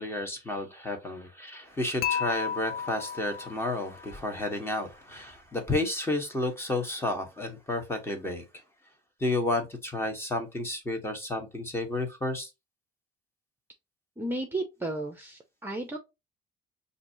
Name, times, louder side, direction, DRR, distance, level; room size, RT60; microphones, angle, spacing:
voice 1, 0.0-8.4 9.2-12.5, left 2 dB, 15° left, 1.4 m, -31 dB
Dishes pots and pans / Chink clink, 2.0-4.1, left 8 dB, 65° left, 0.6 m, -33 dB
voice 2, 14.2-16.0, right 2 dB, 10° right, 0.8 m, -33 dB
5.8 x 2.7 x 2.8 m
cardioid pair, 110°, 17 cm